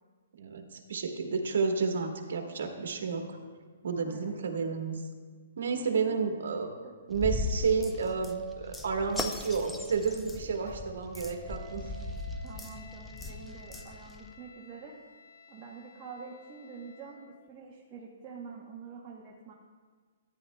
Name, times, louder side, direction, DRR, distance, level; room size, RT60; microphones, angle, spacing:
voice 1, 0.4-3.4 3.8-5.0 5.6-6.7 7.1-11.9, right 5 dB, 70° right, 4 dB, 1.3 m, -31 dB
voice 2, 6.4-6.9 12.4-15.0 15.5-19.5, right 5 dB, 20° right, -4 dB, 0.9 m, -47 dB
sound 1, 7.1-14.3, left 2 dB, 5° left, 0.4 m, -39 dB
Wind instrument woodwind instrument, 11.2-17.3, left 1 dB, 85° left, 1.9 m, -53 dB
14.0 x 9.4 x 2.2 m, 1.5 s
hypercardioid pair, 165°, 0 cm